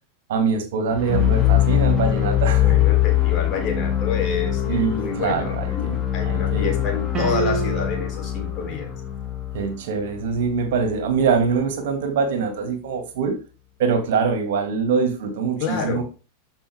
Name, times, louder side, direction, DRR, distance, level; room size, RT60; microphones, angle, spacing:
voice 1, 0.3-2.7 4.7-5.9 6.3-6.8 9.5-13.4 13.8-16.0, right 5 dB, 55° right, 2.5 m, -23 dB
sound 1, 0.9-11.0, left 12 dB, 15° left, 2.6 m, -22 dB
voice 2, 2.6-8.9 15.6-16.0, left 5 dB, 35° left, 4.0 m, -29 dB
sound 2, 7.1-8.2, right 5 dB, 20° right, 2.4 m, -27 dB
14.0 x 5.8 x 3.7 m
figure-of-eight pair, 90°, 0 cm